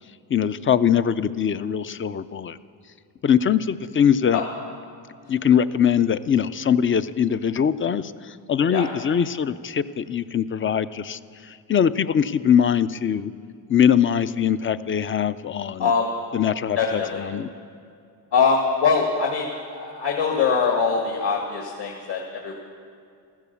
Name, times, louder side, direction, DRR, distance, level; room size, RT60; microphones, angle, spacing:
voice 1, 0.3-2.6 3.2-4.4 5.3-13.3 13.7-15.9 16.3-17.5, left 8 dB, 30° left, 14 dB, 0.4 m, -22 dB
voice 2, 15.8-16.1 16.8-17.2 18.3-22.5, left 5 dB, 60° left, -1 dB, 2.0 m, -23 dB
14.5 x 12.0 x 7.0 m, 2.3 s
cardioid pair, 100°, 46 cm